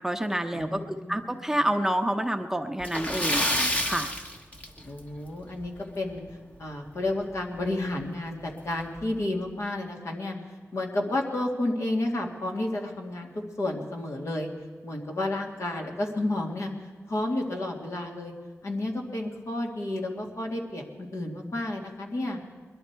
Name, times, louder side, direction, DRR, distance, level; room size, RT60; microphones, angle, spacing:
voice 1, 0.0-3.4 3.8-4.1, right 1 dB, 10° right, 6 dB, 0.8 m, -28 dB
voice 2, 0.5-1.2 1.5-1.6 4.9-6.2 6.6-10.3 10.7-14.5 14.8-16.7 17.1-18.3 18.6-22.4, left 1 dB, 60° left, 1 dB, 2.2 m, -31 dB
Splash splatter, 2.8-5.2 5.5-5.7 6.1-6.2 7.6-7.7 8.1-8.2 8.8-9.0, left 1 dB, 25° left, 1.3 m, -28 dB
21.5 x 11.5 x 4.6 m, 1.5 s
cardioid pair, 70°, 5 cm